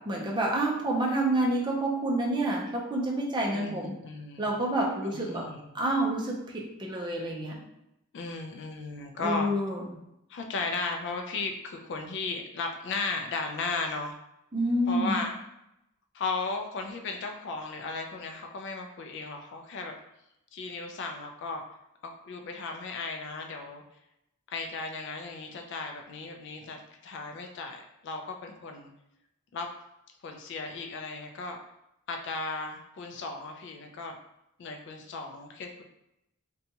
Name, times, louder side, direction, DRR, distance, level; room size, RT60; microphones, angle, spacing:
voice 1, 0.1-3.9 4.4-5.4 5.7-7.5 9.2-9.8 14.5-15.2, right 1 dB, 20° right, -2 dB, 0.4 m, -28 dB
voice 2, 3.5-4.5 5.0-5.6 8.1-9.5 10.3-14.1 14.9-15.3 16.1-19.9 20.5-21.6 22.0-23.8 24.5-28.9 29.5-29.7 30.2-31.6 32.1-34.2 34.6-35.8, left 3 dB, 55° left, 4 dB, 0.3 m, -35 dB
2.8 x 2.3 x 2.7 m, 0.85 s
head